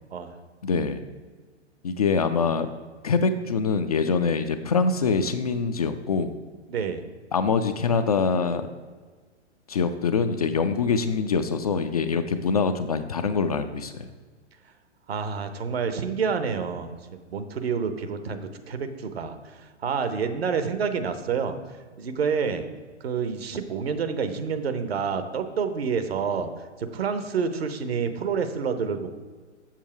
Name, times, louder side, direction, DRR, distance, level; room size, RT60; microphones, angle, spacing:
voice 1, 0.6-1.0 1.8-2.7 3.0-6.4 7.3-8.7 9.7-14.1, left 5 dB, 35° left, 8 dB, 0.4 m, -24 dB
voice 2, 6.7-7.0 15.1-16.9 17.3-21.6 22.0-22.6 23.0-26.5 26.8-29.1, right 6 dB, 60° right, 9 dB, 0.9 m, -28 dB
7.4 x 6.8 x 4.6 m, 1.5 s
figure-of-eight pair, 115°, 35 cm